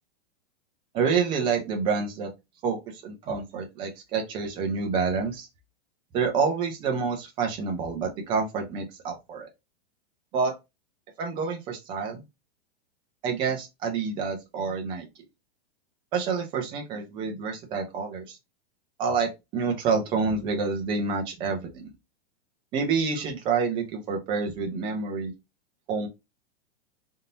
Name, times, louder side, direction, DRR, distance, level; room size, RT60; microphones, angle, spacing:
voice 1, 0.9-2.3 2.6-5.5 6.1-9.5 10.3-10.5 11.2-12.2 13.2-15.1 16.1-18.4 19.0-21.9 22.7-25.3 25.9-26.1, right 5 dB, 15° right, 3 dB, 0.6 m, -28 dB
3.6 x 2.8 x 3.8 m, 0.23 s
supercardioid pair, 170°, 31 cm